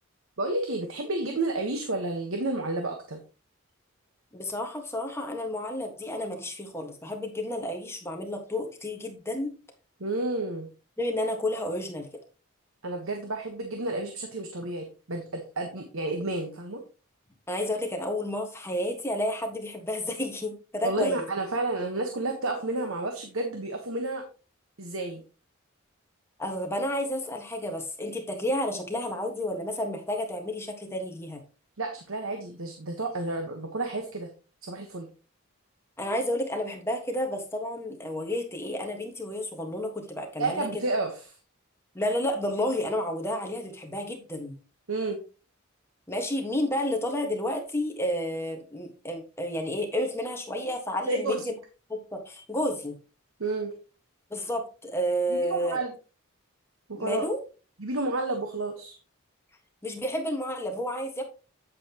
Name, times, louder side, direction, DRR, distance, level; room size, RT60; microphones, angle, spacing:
voice 1, 0.4-3.2 10.0-10.7 12.8-16.8 20.8-24.2 24.8-25.2 31.8-34.3 34.6-35.1 40.4-41.3 44.9-45.2 51.1-51.4 53.4-53.7 55.3-55.9 56.9-57.3 57.8-59.0, right 2 dB, 80° right, 4 dB, 1.2 m, -31 dB
voice 2, 4.3-9.6 11.0-12.1 17.5-21.2 26.4-31.4 36.0-40.7 41.9-44.6 46.1-51.5 51.9-53.0 54.3-55.8 57.0-57.4 59.8-61.2, left 1 dB, 10° left, 3 dB, 1.5 m, -31 dB
8.9 x 7.6 x 2.9 m, 0.34 s
head